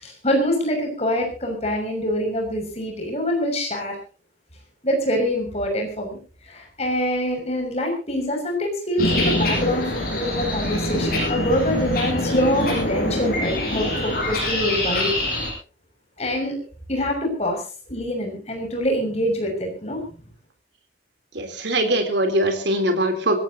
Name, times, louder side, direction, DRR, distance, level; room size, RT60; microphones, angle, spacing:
voice 1, 0.0-4.0 4.8-6.2 6.4-15.1 16.2-16.6 16.9-17.6 17.9-20.0, equal, 35° left, 3 dB, 6.5 m, -25 dB
sound 1, 9.0-15.5, left 1 dB, 50° left, 6.9 m, -24 dB
voice 2, 21.4-23.4, right 1 dB, 70° right, 5 dB, 3.5 m, -22 dB
25.5 x 17.0 x 2.9 m, 0.36 s
head